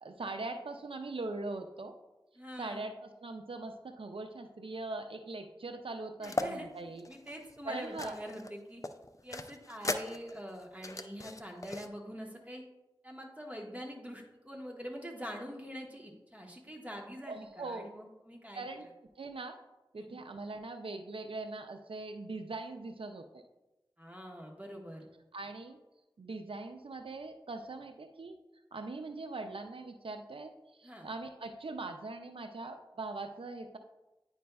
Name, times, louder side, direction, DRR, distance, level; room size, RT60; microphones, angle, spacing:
voice 1, 0.0-1.9 2.6-7.1 7.7-8.2 17.3-17.9 18.5-18.9 19.2-19.6 19.9-23.4 25.3-25.8 26.2-28.4 28.7-33.8, right 3 dB, 90° right, 6 dB, 0.4 m, -41 dB
voice 2, 2.3-2.8 6.2-6.7 7.1-8.8 9.2-12.6 13.0-18.9 19.9-20.2 24.0-25.1 30.8-31.1, equal, 15° right, 0 dB, 1.2 m, -44 dB
sound 1, 6.2-6.5 7.0-8.5 8.8-11.9, left 2 dB, 40° left, 0.4 m, -38 dB
9.3 x 5.2 x 2.3 m, 1.0 s
wide cardioid pair, 45°, 9 cm